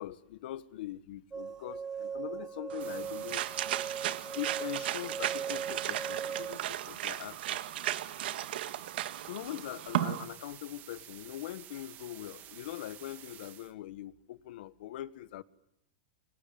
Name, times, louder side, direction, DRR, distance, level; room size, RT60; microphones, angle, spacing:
voice 1, 0.0-3.5 4.3-7.6 9.2-15.4, left 14 dB, 65° left, 1.4 m, -42 dB
sound 1, 1.3-6.5, right 6 dB, 10° right, 1.1 m, -39 dB
sound 2, 2.7-10.3, right 13 dB, 70° right, 1.7 m, -35 dB
sound 3, 2.8-13.7, right 12 dB, 30° right, 1.7 m, -51 dB
28.5 x 24.0 x 8.7 m
supercardioid pair, 155°, 6 cm